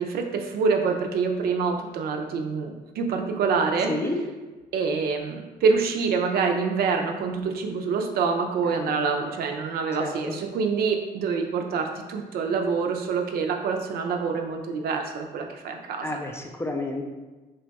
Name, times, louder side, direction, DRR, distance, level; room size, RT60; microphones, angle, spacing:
voice 1, 0.0-3.9 4.7-16.1, right 5 dB, 65° right, 3 dB, 0.5 m, -26 dB
voice 2, 8.7-9.2 10.0-10.3 16.0-17.0, left 2 dB, 15° left, 2 dB, 0.4 m, -31 dB
3.2 x 2.3 x 4.0 m, 1.2 s
cardioid pair, 110°, 17 cm